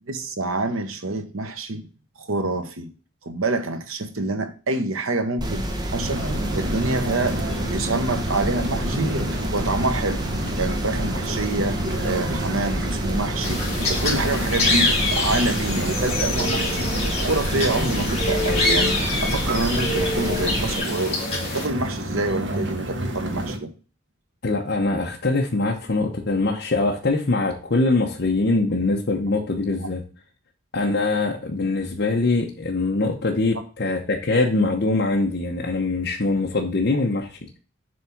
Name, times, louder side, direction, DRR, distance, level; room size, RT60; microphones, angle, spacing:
voice 1, 0.1-1.9 2.2-2.9 3.2-6.3 6.5-9.1 9.5-10.3 10.6-16.9 17.2-21.2 21.5-23.7 36.9-37.0, right 2 dB, 90° right, 1.1 m, -27 dB
sound 1, 5.4-20.8, right 1 dB, 20° right, 1.0 m, -29 dB
sound 2, 6.0-23.6, right 1 dB, 60° right, 1.4 m, -30 dB
sound 3, 13.4-21.7, left 2 dB, 30° left, 2.5 m, -25 dB
voice 2, 24.4-30.0 30.7-37.4, left 2 dB, 55° left, 0.9 m, -23 dB
7.4 x 3.6 x 5.9 m
head